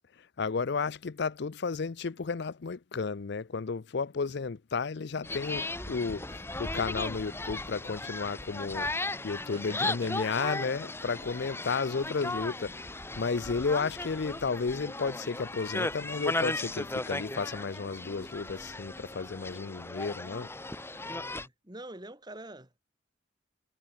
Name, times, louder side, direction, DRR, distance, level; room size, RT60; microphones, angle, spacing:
voice 1, 0.4-8.9 9.2-20.5, left 4 dB, 60° left, 0.5 m, -33 dB
sound 1, 5.2-21.5, left 2 dB, 15° left, 2.1 m, -36 dB
voice 2, 9.5-10.1 21.0-22.7, right 1 dB, 20° right, 3.3 m, -46 dB
head